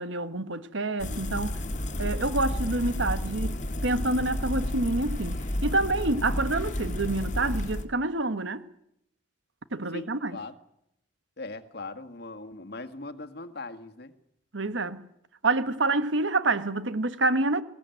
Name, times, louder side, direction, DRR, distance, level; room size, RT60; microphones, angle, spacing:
voice 1, 0.0-1.6 2.0-3.6 3.8-8.6 9.7-10.4 14.5-15.1 15.4-17.6, right 2 dB, 85° right, 1.5 m, -27 dB
sound 1, 1.0-7.8, left 1 dB, 40° left, 2.2 m, -31 dB
voice 2, 9.9-10.6 11.4-14.1, left 2 dB, 55° left, 1.8 m, -40 dB
20.5 x 18.5 x 9.2 m
head